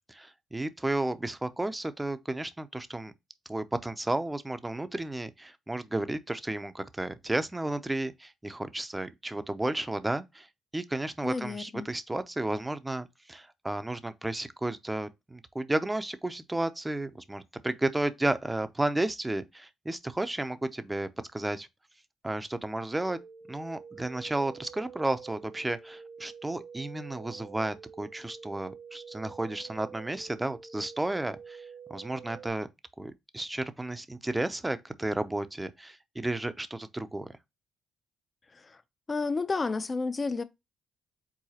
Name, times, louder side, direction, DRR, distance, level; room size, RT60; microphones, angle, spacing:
voice 1, 0.1-3.1 3.5-10.5 10.7-21.7 22.2-23.2 23.5-31.6 31.9-32.7 33.0-37.3, right 2 dB, 10° right, 0.6 m, -33 dB
voice 2, 11.2-11.9 38.5-38.8 39.1-40.4, left 3 dB, 30° left, 0.5 m, -31 dB
sound 1, 22.9-32.5, right 6 dB, 50° right, 0.9 m, -48 dB
4.8 x 3.9 x 2.8 m
cardioid pair, 90°, 0 cm